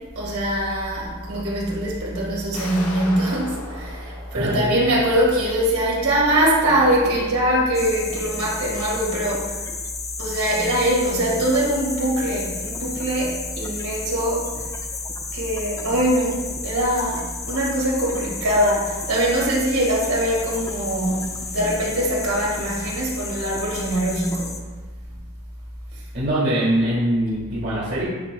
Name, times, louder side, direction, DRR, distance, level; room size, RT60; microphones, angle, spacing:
voice 1, 0.2-9.6 10.2-14.5 15.3-21.3 21.5-24.7, right 1 dB, 80° right, -4 dB, 1.9 m, -22 dB
sound 1, 2.5-5.4, left 2 dB, 75° left, 1.0 m, -37 dB
voice 2, 4.3-4.8 26.1-28.0, right 1 dB, 50° right, -10 dB, 1.9 m, -22 dB
sound 2, 7.7-24.6, left 4 dB, 15° left, 0.3 m, -33 dB
9.9 x 4.3 x 2.3 m, 1.3 s
head